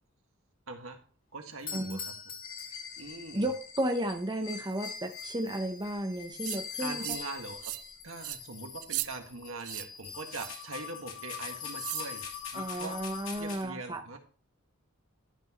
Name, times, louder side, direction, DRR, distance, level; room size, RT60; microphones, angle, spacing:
voice 1, 0.7-1.0 1.3-2.0 3.0-3.5 6.8-7.7 8.0-12.2 12.5-13.0 13.4-14.2, right 3 dB, 70° right, 4 dB, 1.7 m, -42 dB
Doorbell, 1.5-3.5, left 6 dB, 45° left, 1.8 m, -42 dB
sound 1, 2.4-13.6, left 7 dB, 70° left, 2.5 m, -43 dB
voice 2, 3.3-7.0 12.5-14.0, right 1 dB, 20° right, 4 dB, 0.8 m, -33 dB
sound 2, 6.4-6.6 7.0-7.3 7.6-7.9 8.2-8.4 8.8-9.1 9.6-9.9 10.3-10.6 11.8-12.1, right 17 dB, 85° right, 0.5 m, -37 dB
12.0 x 6.1 x 3.0 m, 0.41 s
head